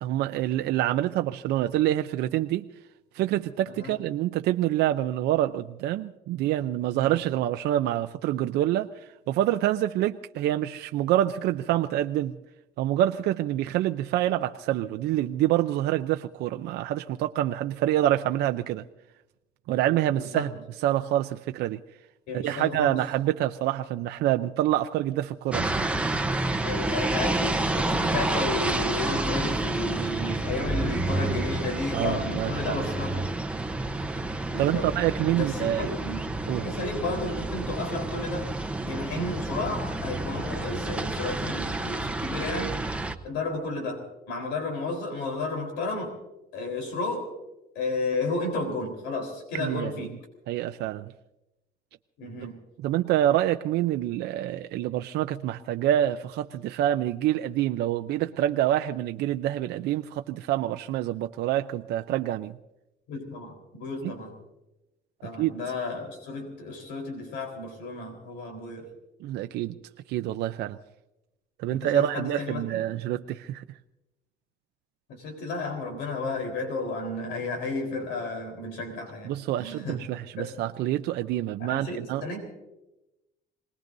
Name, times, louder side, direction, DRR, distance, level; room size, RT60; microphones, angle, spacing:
voice 1, 0.0-2.7 3.1-12.4 12.8-18.8 19.7-20.5 20.8-21.8 22.4-25.9 31.9-32.8 34.6-35.9 36.5-36.6 39.2-39.3 49.5-49.9 50.5-51.1 52.8-62.6 64.0-64.1 65.4-65.5 69.2-69.7 70.1-70.8 71.6-73.8 79.2-82.2, right 13 dB, 80° right, 7 dB, 0.6 m, -26 dB
voice 2, 20.2-20.5 22.3-23.0 26.6-33.2 34.5-34.9 35.3-36.3 36.5-38.5 38.8-42.8 43.2-46.1 46.5-47.3 47.7-50.2 52.2-52.6 63.1-64.4 65.2-68.9 71.7-72.8 75.1-79.3 79.6-80.0 80.4-80.5 81.6-82.4, left 3 dB, 85° left, 4 dB, 4.1 m, -32 dB
sound 1, 25.5-43.1, right 2 dB, 5° right, 0.9 m, -29 dB
27.0 x 20.0 x 2.7 m, 0.95 s
cardioid pair, 110°, 17 cm